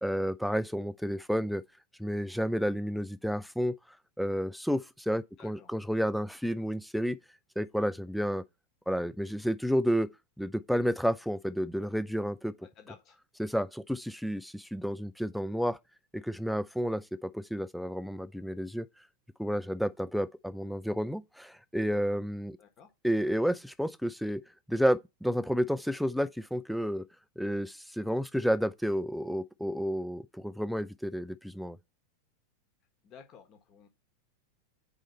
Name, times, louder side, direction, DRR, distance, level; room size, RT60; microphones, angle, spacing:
voice 1, 0.0-1.6 2.0-3.7 4.2-7.2 7.6-8.4 8.9-10.1 10.4-12.5 13.4-15.8 16.1-18.9 19.4-22.6 23.0-24.4 24.7-27.1 27.4-31.8, equal, ahead, 0.4 m, -31 dB
voice 2, 5.4-5.7 12.6-13.2 22.6-22.9 33.0-33.9, left 7 dB, 35° left, 1.4 m, -53 dB
4.9 x 4.0 x 5.5 m
figure-of-eight pair, 90°, 0 cm